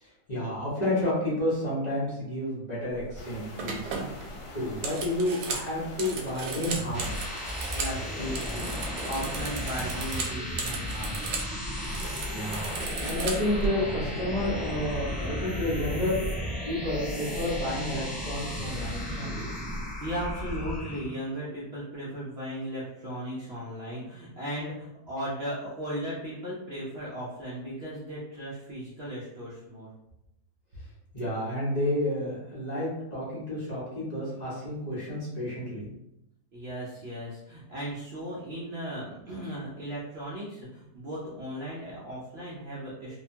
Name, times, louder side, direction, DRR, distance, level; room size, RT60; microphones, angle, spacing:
voice 1, 0.0-3.9 4.5-7.2 12.3-12.7 13.0-16.2 16.7-19.5 31.1-35.9, left 1 dB, 35° left, -8 dB, 0.8 m, -30 dB
sound 1, 3.0-3.2 3.6-8.0 8.3-11.5 11.8-13.7, right 3 dB, 75° right, 1.1 m, -36 dB
sound 2, 3.2-8.4, left 2 dB, 80° left, 1.2 m, -45 dB
sound 3, 6.6-21.2, left 1 dB, ahead, 0.7 m, -34 dB
voice 2, 7.7-11.2 20.0-29.9 36.5-43.2, equal, 60° right, -7 dB, 0.6 m, -36 dB
2.8 x 2.2 x 2.6 m, 0.87 s
omnidirectional pair, 1.8 m